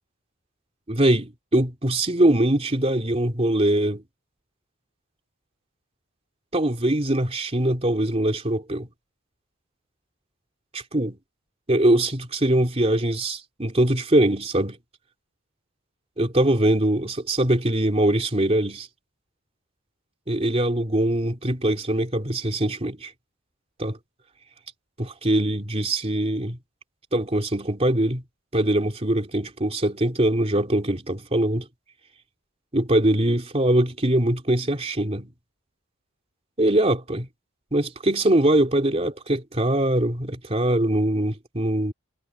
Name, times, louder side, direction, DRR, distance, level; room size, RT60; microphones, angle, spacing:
voice 1, 0.9-4.0 6.5-8.9 10.7-11.2 11.7-14.8 16.2-18.9 20.3-23.1 23.8-24.0 25.0-26.6 27.1-28.2 28.5-31.7 32.7-35.3 36.6-37.3 37.7-41.9, right 1 dB, 30° right, 3.2 m, -22 dB
head